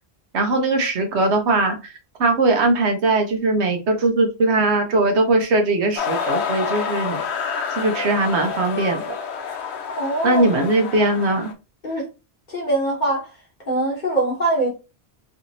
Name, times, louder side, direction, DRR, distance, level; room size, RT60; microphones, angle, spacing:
voice 1, 0.3-1.8 2.2-7.2 7.8-9.0 10.2-11.5, right 2 dB, 80° right, 1.1 m, -20 dB
sound 1, 6.0-11.5, left 6 dB, 75° left, 0.9 m, -28 dB
voice 2, 10.0-10.7 11.8-12.1 12.5-13.3 13.7-14.7, right 2 dB, 45° left, 1.4 m, -22 dB
3.3 x 2.9 x 2.6 m
omnidirectional pair, 1.1 m